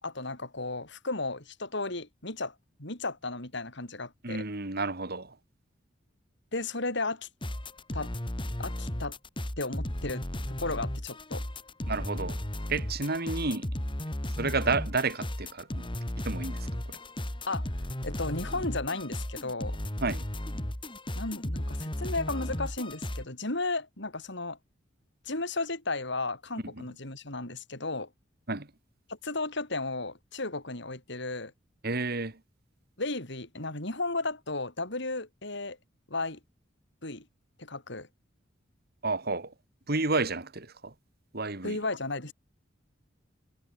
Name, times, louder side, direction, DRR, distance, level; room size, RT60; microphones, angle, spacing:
voice 1, 0.0-2.5 2.8-4.4 6.5-7.3 7.9-8.1 8.6-9.2 9.6-11.4 17.5-17.7 18.0-19.8 21.2-24.6 25.3-28.1 29.1-31.5 33.0-35.8 36.1-36.4 37.0-37.2 37.6-38.1 41.6-42.3, left 2 dB, 65° left, 5.3 m, -34 dB
voice 2, 4.2-5.3 11.9-12.4 12.7-13.7 14.4-15.9 16.2-16.6 16.9-17.0 20.0-20.2 26.8-26.9 28.5-28.7 31.8-32.4 39.0-39.5 39.9-40.9 41.3-41.8, right 3 dB, 55° right, 2.8 m, -31 dB
sound 1, 7.4-23.3, left 1 dB, 25° left, 2.7 m, -35 dB
head